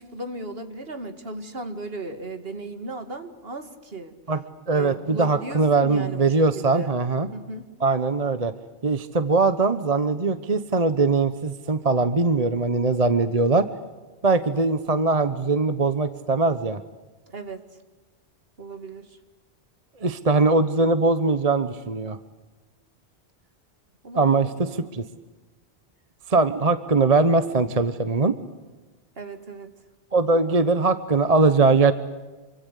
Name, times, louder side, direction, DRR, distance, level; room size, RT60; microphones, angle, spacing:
voice 1, 0.0-4.1 4.7-6.9 7.3-7.7 17.3-17.6 18.6-19.2 24.0-24.3 24.6-24.9 29.2-29.7, right 2 dB, 60° right, 8 dB, 2.5 m, -36 dB
voice 2, 4.3-7.3 7.8-8.5 8.8-13.7 14.2-16.8 20.0-22.2 24.1-25.0 26.3-28.3 30.1-31.9, right 3 dB, 35° right, 11 dB, 1.1 m, -21 dB
27.0 x 25.0 x 8.4 m, 1.2 s
omnidirectional pair, 1.1 m